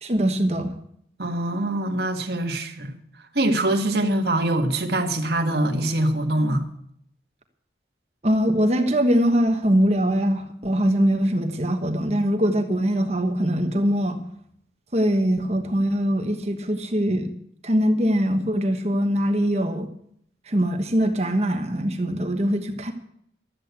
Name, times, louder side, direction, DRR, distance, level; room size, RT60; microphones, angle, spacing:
voice 1, 0.0-0.7 8.2-14.2 14.9-17.3 17.6-19.9 20.5-22.9, equal, 40° right, 1.3 m, -22 dB
voice 2, 1.2-3.0 3.3-6.6, right 1 dB, 65° right, 1.7 m, -23 dB
13.0 x 8.5 x 8.2 m
head